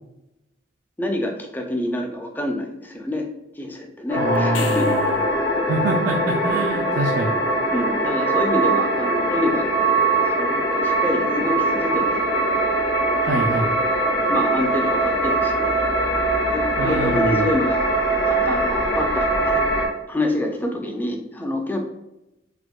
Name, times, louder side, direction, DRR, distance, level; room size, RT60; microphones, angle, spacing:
voice 1, 1.0-3.2 3.6-4.9 7.7-12.2 13.3-15.9 16.5-17.9 18.3-19.6 20.1-21.8, left 1 dB, 10° left, 2 dB, 0.4 m, -27 dB
sound 1, 4.1-19.9, right 2 dB, 70° left, 0.9 m, -21 dB
voice 2, 4.2-5.2 5.7-7.4 13.2-13.7 16.8-17.5, right 2 dB, 60° right, 2 dB, 0.3 m, -25 dB
sound 2, 4.4-5.3 10.0-10.1, left 7 dB, 85° left, 0.4 m, -36 dB
4.6 x 2.2 x 2.3 m, 0.91 s
head